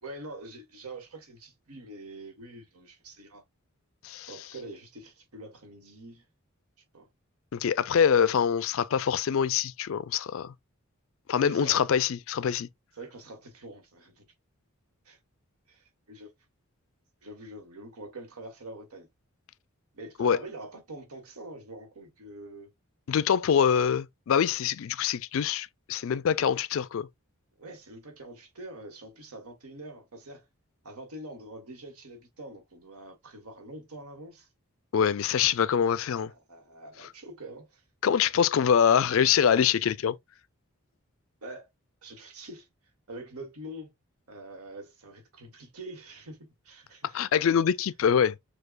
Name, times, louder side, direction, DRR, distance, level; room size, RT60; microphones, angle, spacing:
voice 1, 0.0-3.4 4.3-6.2 6.9-7.1 11.4-11.9 12.9-14.2 15.0-15.2 15.7-16.3 17.2-19.1 19.9-22.7 27.6-30.4 30.8-34.5 36.2-37.8 41.4-41.7 42.0-42.7 43.1-43.9 44.3-47.2, right 1 dB, 85° right, 1.4 m, -45 dB
voice 2, 7.5-10.5 11.3-12.7 20.2-20.4 23.1-27.1 34.9-36.3 38.0-40.2 47.1-48.4, left 7 dB, 65° left, 0.3 m, -24 dB
6.6 x 2.3 x 2.3 m
head